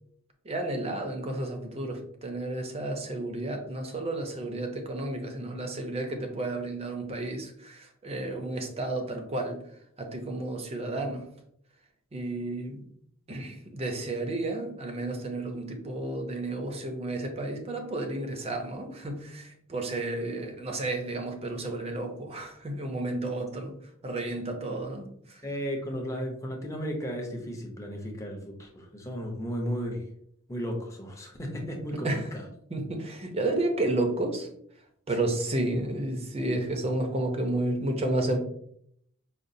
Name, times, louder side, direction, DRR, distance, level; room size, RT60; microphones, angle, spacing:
voice 1, 0.4-9.6 10.0-11.2 12.1-12.9 13.3-23.8 24.0-25.4 32.0-32.3 32.7-34.5 35.1-38.4, right 2 dB, 30° right, 4 dB, 0.6 m, -32 dB
voice 2, 25.4-30.1 30.5-32.5, equal, 15° left, 1 dB, 0.6 m, -34 dB
5.0 x 2.3 x 2.6 m, 0.69 s
head